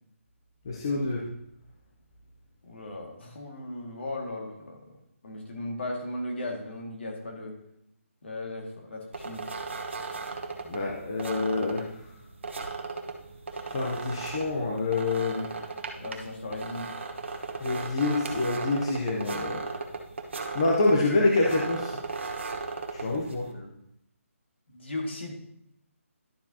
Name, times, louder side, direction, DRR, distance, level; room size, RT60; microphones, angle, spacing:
voice 1, 0.7-1.2 10.6-12.0 13.7-15.5 17.6-19.6 20.5-21.9 22.9-23.5, left 2 dB, 20° left, -2 dB, 0.6 m, -26 dB
voice 2, 2.6-5.0 5.2-7.6 8.2-9.5 16.0-16.9 23.5-23.7 24.7-25.3, left 1 dB, 50° left, 1 dB, 2.0 m, -37 dB
sound 1, 9.1-23.5, right 3 dB, 55° right, 1.1 m, -37 dB
11.5 x 7.2 x 2.8 m, 0.76 s
hypercardioid pair, 180°, 8 cm